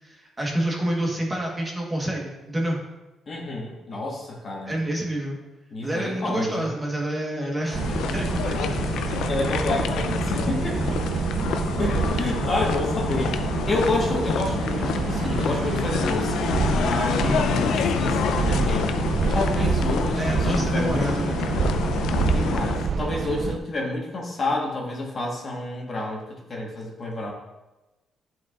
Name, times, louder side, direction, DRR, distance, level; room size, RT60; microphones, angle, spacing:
voice 1, 0.0-2.8 4.7-5.4 5.8-9.1 17.2-17.6 20.2-21.6, right 1 dB, 15° right, -2 dB, 1.2 m, -28 dB
voice 2, 3.3-4.7 5.7-6.7 9.3-10.8 11.8-13.4 13.7-19.0 19.3-21.3 22.3-27.3, left 2 dB, 35° left, -1 dB, 1.3 m, -29 dB
sound 1, 7.7-22.9, left 7 dB, 80° left, 0.4 m, -28 dB
sound 2, 7.7-23.6, right 5 dB, 45° right, 0.4 m, -27 dB
11.0 x 4.7 x 2.4 m, 1.0 s
cardioid pair, 145°, 0 cm